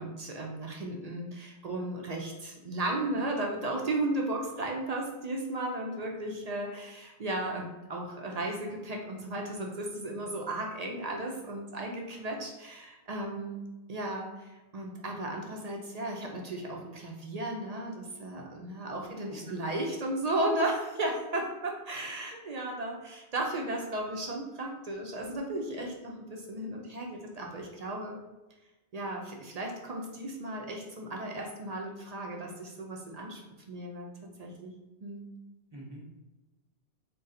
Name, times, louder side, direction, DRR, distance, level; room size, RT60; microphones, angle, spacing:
voice 1, 0.0-28.2 28.9-33.4 33.7-34.7 35.0-35.3, right 1 dB, 50° right, 0 dB, 0.5 m, -35 dB
voice 2, 19.0-19.5 35.7-36.1, equal, 25° right, -4 dB, 0.9 m, -46 dB
3.7 x 2.3 x 4.0 m, 1.1 s
omnidirectional pair, 1.2 m